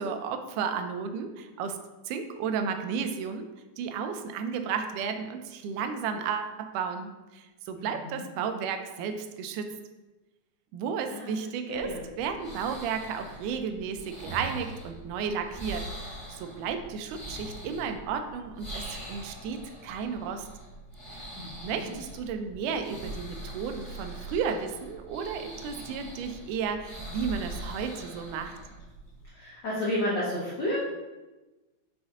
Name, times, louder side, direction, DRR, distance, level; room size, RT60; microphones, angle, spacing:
voice 1, 0.0-1.8 2.1-3.5 3.8-9.7 10.7-11.9 12.2-20.5 21.1-21.2 21.6-28.6, right 6 dB, 85° right, 7 dB, 2.1 m, -33 dB
voice 2, 7.8-8.3 11.1-11.3 11.7-12.0 21.4-21.9 29.3-30.8, left 1 dB, 85° left, -6 dB, 0.9 m, -32 dB
sound 1, 11.7-29.3, right 1 dB, 20° left, 1.2 m, -42 dB
6.2 x 4.2 x 3.6 m, 1.1 s
omnidirectional pair, 3.6 m